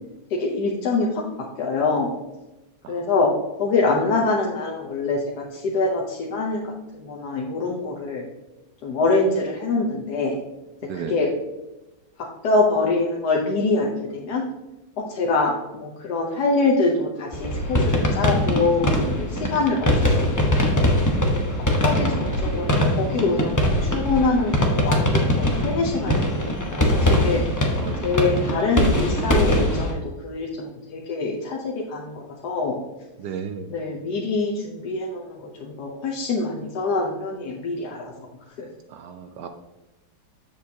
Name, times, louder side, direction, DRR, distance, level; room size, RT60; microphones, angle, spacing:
voice 1, 0.3-1.2 1.6-2.1 2.9-6.6 6.9-8.3 8.8-10.4 10.9-11.3 12.4-14.4 15.0-20.9 21.5-27.4 28.0-32.8 33.7-38.1 38.6-38.7, left 3 dB, 65° left, -2 dB, 1.3 m, -25 dB
voice 2, 10.8-11.2 19.4-19.6 27.7-28.1 33.2-33.7 38.9-39.5, right 7 dB, 70° right, 7 dB, 1.1 m, -34 dB
sound 1, 17.3-29.9, left 1 dB, 25° left, 0.4 m, -22 dB
7.7 x 6.9 x 2.8 m, 1.0 s
omnidirectional pair, 2.1 m